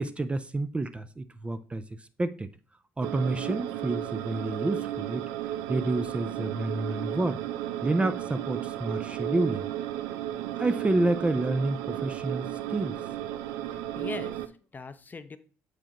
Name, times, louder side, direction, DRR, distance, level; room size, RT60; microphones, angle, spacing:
voice 1, 0.0-1.8 2.2-2.5 3.0-5.3 5.7-7.4 7.8-9.7 10.6-13.0, right 2 dB, 20° right, 0.4 m, -29 dB
sound 1, 3.0-14.5, right 12 dB, 80° right, 0.4 m, -34 dB
voice 2, 13.7-15.4, left 4 dB, 30° left, 0.5 m, -41 dB
7.5 x 4.8 x 2.9 m
supercardioid pair, 70°, 6 cm